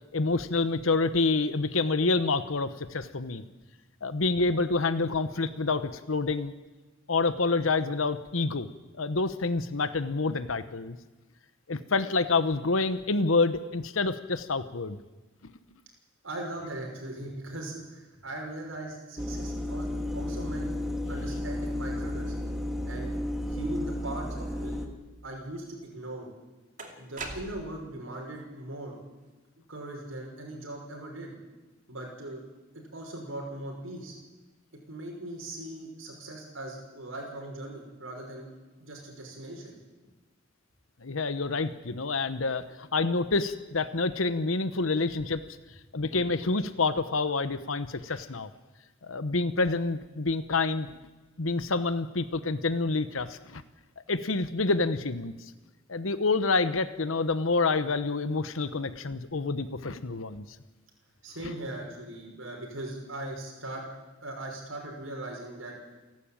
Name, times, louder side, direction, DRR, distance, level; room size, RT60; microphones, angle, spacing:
voice 1, 0.1-3.4 4.0-6.5 7.1-8.7 9.0-11.0 11.7-15.0 15.4-15.5 41.0-45.4 45.9-48.5 49.0-50.9 51.4-53.6 54.1-55.3 55.9-60.4, left 3 dB, 90° left, 11 dB, 1.1 m, -27 dB
voice 2, 16.2-20.7 21.1-22.3 22.8-23.2 23.5-24.8 25.2-26.3 27.0-28.9 29.7-31.3 31.9-32.4 32.7-34.2 34.9-38.5 38.8-39.7 61.2-63.8 64.2-65.7, right 1 dB, 85° right, 0 dB, 6.0 m, -39 dB
sound 1, 19.2-24.9, left 1 dB, ahead, 2.2 m, -33 dB
sound 2, 25.8-25.9 26.8-27.9, right 3 dB, 40° right, 2.6 m, -40 dB
28.5 x 12.5 x 8.9 m, 1.2 s
head